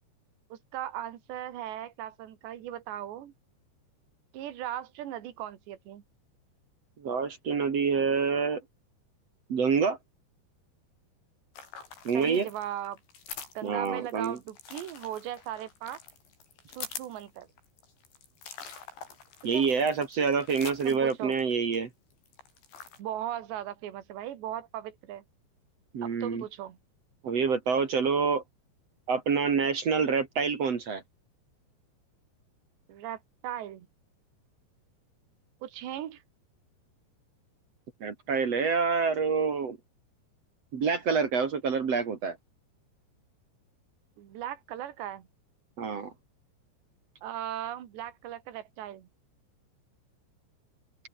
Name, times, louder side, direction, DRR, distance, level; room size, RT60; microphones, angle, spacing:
voice 1, 0.5-3.3 4.3-6.0 12.1-13.0 13.6-16.0 16.8-17.5 19.5-19.7 20.8-21.3 23.0-25.2 26.0-26.8 32.9-33.9 35.6-36.2 44.2-45.3 47.2-49.1, right 12 dB, 70° right, 4.4 m, -38 dB
voice 2, 7.0-8.6 9.5-10.0 12.0-12.5 13.6-14.4 19.4-21.9 25.9-26.4 27.2-28.4 29.1-31.0 38.0-39.8 40.7-42.4 45.8-46.1, right 5 dB, 45° right, 2.6 m, -27 dB
sound 1, 11.6-21.8 22.1-23.0, left 6 dB, 70° left, 8.5 m, -45 dB
open air
omnidirectional pair, 5.3 m